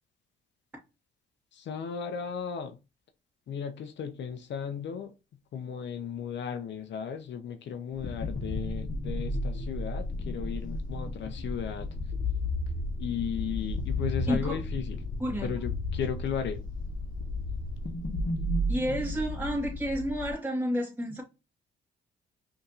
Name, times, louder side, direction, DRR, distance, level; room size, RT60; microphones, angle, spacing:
voice 1, 1.5-2.8 3.5-5.1 5.5-11.9 13.0-15.0 15.4-16.6 18.9-19.0, left 8 dB, 65° left, 0.7 m, -35 dB
sound 1, 8.0-20.3, left 1 dB, 45° left, 1.1 m, -33 dB
voice 2, 14.3-14.6 15.2-15.5 18.7-21.2, equal, 10° right, 2.1 m, -30 dB
5.4 x 2.8 x 2.4 m
cardioid pair, 90°, 20 cm